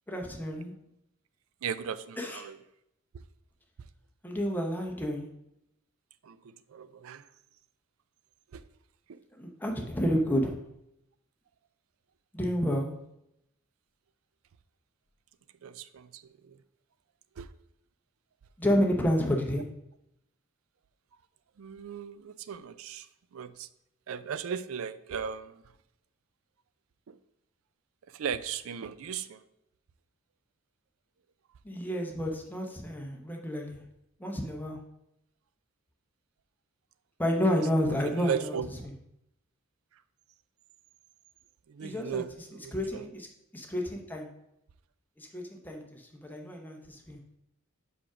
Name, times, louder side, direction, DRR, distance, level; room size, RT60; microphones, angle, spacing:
voice 1, 0.1-0.7 2.2-2.4 4.2-5.3 9.4-10.6 12.3-12.9 18.6-19.7 31.6-33.8 34.2-34.8 37.2-38.6 41.8-42.2 42.7-43.3 43.5-44.3 45.2-47.2, equal, 10° left, 0.8 m, -30 dB
voice 2, 1.6-2.6 6.2-7.3 8.5-8.6 9.1-9.2 15.6-16.6 17.4-17.5 21.6-23.7 24.1-25.6 27.1-27.2 28.1-29.4 37.8-38.7 41.7-43.1, right 7 dB, 75° right, 0.4 m, -37 dB
5.0 x 4.9 x 5.9 m
head